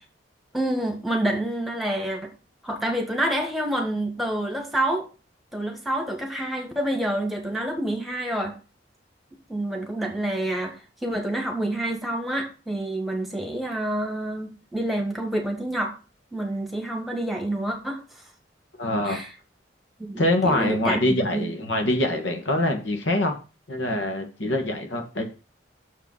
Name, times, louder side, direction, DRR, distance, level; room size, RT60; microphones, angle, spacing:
voice 1, 0.5-2.3 2.6-5.1 5.5-8.5 9.5-10.8 11.0-15.9 16.3-18.2 19.0-19.3 20.0-21.0 21.3-21.5, right 1 dB, ahead, 2 dB, 1.5 m, -28 dB
voice 2, 18.8-19.2 20.2-23.3 23.7-25.3, left 1 dB, 80° left, 4 dB, 1.6 m, -24 dB
6.6 x 4.9 x 6.2 m, 0.33 s
head